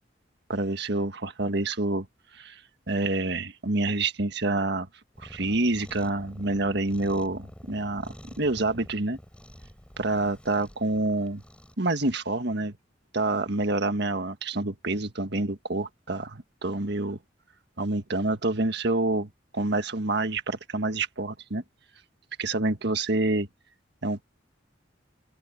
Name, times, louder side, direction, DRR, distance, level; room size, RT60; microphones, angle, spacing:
voice 1, 0.5-2.1 2.3-2.6 2.9-4.9 5.2-9.2 10.0-11.4 11.8-12.8 13.1-17.2 17.8-21.6 22.4-23.5 24.0-24.2, right 2 dB, 65° right, 1.7 m, -27 dB
Cat, 5.1-11.8, equal, 5° left, 3.8 m, -48 dB
open air
head